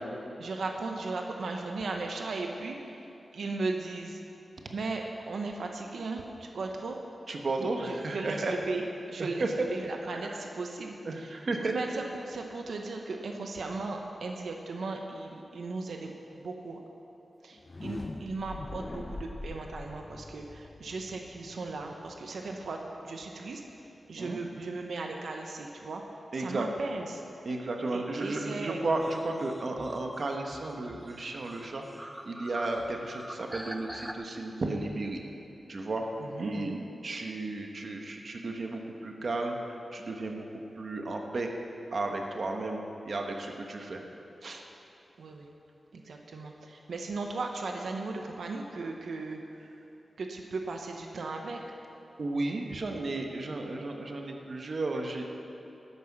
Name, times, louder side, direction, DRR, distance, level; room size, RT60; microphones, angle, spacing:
voice 1, 0.4-3.0 3.3-4.2 4.7-7.0 7.6-11.4 11.7-16.8 17.4-23.6 24.1-26.0 26.4-27.2 27.9-28.9 36.2-36.8 45.2-45.5 45.9-49.7 50.2-51.6, right 3 dB, 90° right, 2 dB, 0.9 m, -37 dB
voice 2, 7.3-8.6 9.2-9.7 10.1-10.4 11.0-11.7 24.1-24.4 26.3-26.7 27.4-35.2 35.7-36.0 36.4-36.7 37.0-39.6 39.9-41.5 41.9-42.8 43.0-44.0 44.4-44.6 52.2-55.3, right 2 dB, 55° right, 2 dB, 1.2 m, -33 dB
sound 1, 17.5-23.4, left 2 dB, 30° left, 0.6 m, -43 dB
sound 2, 28.8-34.1, right 1 dB, 5° right, 0.7 m, -45 dB
13.0 x 9.9 x 6.0 m, 2.9 s
wide cardioid pair, 135°, 0 cm